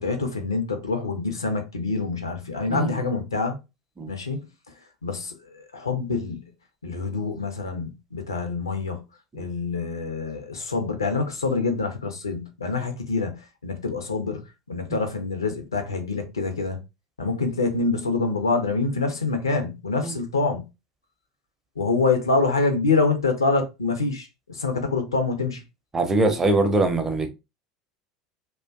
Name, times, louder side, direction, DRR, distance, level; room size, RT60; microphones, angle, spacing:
voice 1, 0.0-3.6 4.1-4.4 5.0-6.4 6.8-9.0 9.3-14.4 14.7-16.8 17.2-20.6 21.8-25.6, left 3 dB, 75° left, 0.5 m, -26 dB
voice 2, 2.7-3.0 4.0-4.1 9.3-9.4 14.9-15.0 20.0-20.2 25.9-27.3, right 2 dB, 20° right, 0.5 m, -23 dB
2.4 x 2.2 x 2.3 m
figure-of-eight pair, 75°, 2 cm